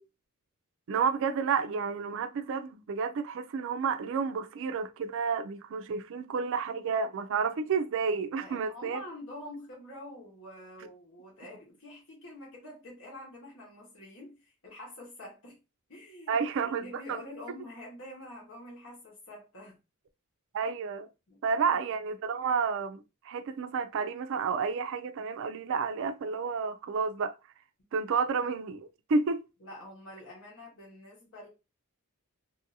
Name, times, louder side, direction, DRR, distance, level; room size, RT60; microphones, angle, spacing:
voice 1, 0.9-9.0 16.3-17.2 20.5-21.1 21.4-27.3 27.9-29.5, right 5 dB, 60° right, 0.4 m, -30 dB
voice 2, 8.4-15.6 15.9-19.8 20.6-20.7 21.3-21.4 21.6-21.8 29.6-31.5, left 1 dB, 65° left, 1.3 m, -46 dB
2.7 x 2.6 x 2.6 m
head